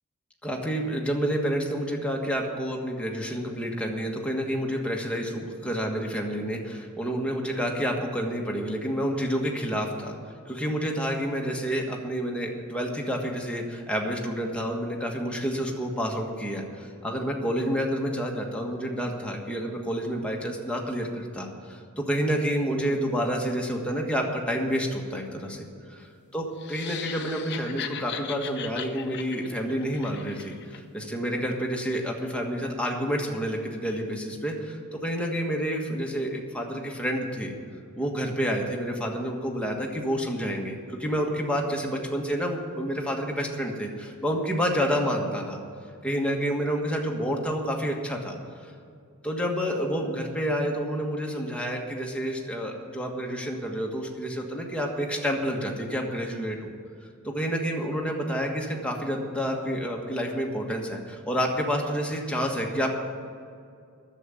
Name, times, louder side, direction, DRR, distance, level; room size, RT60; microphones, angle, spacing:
voice 1, 0.4-10.2 10.5-26.1 26.3-37.5 37.9-45.6 46.0-48.4 48.6-48.7 49.2-56.7 57.2-63.0, equal, 5° left, 0 dB, 1.5 m, -29 dB
sound 1, 26.6-30.8, left 8 dB, 50° left, 0.8 m, -38 dB
10.5 x 7.7 x 9.8 m, 2.3 s
head